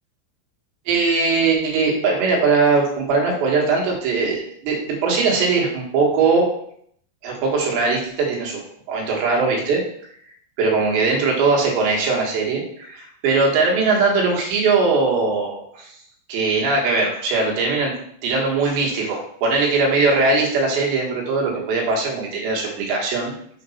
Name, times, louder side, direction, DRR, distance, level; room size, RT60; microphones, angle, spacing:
voice 1, 0.9-6.5 7.2-8.6 8.9-9.8 10.6-16.0 16.3-18.0 18.2-23.4, right 4 dB, 80° right, -2 dB, 3.8 m, -20 dB
7.0 x 4.1 x 5.5 m, 0.68 s
omnidirectional pair, 5.1 m